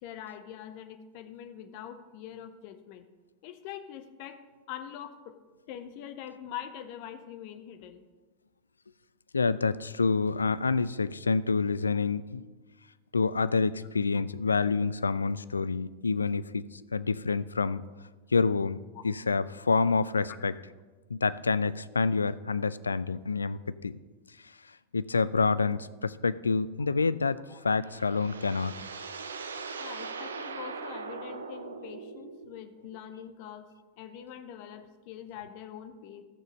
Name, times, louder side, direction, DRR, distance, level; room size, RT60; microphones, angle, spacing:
voice 1, 0.0-3.1 3.4-4.4 4.7-5.4 5.7-8.0 18.9-19.0 27.5-27.6 29.7-33.7 34.0-36.2, left 10 dB, 45° left, 10 dB, 0.8 m, -43 dB
voice 2, 9.3-12.4 13.1-16.6 16.9-17.8 18.3-18.8 19.0-20.5 21.1-24.0 24.9-28.7, left 4 dB, 75° left, 16 dB, 0.3 m, -27 dB
sound 1, 27.4-32.6, right 4 dB, 70° right, 0.6 m, -41 dB
14.0 x 6.6 x 5.1 m, 1.3 s
figure-of-eight pair, 90°, 0 cm